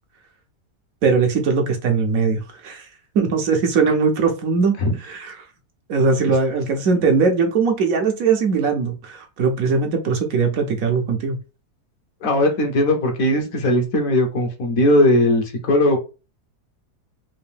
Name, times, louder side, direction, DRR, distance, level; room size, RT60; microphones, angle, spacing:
voice 1, 1.0-2.9 3.1-5.5 5.9-11.4, right 5 dB, 65° right, 3 dB, 1.0 m, -20 dB
voice 2, 12.2-16.0, left 1 dB, 60° left, 3 dB, 1.2 m, -18 dB
3.7 x 2.6 x 3.4 m, 0.31 s
omnidirectional pair, 1.7 m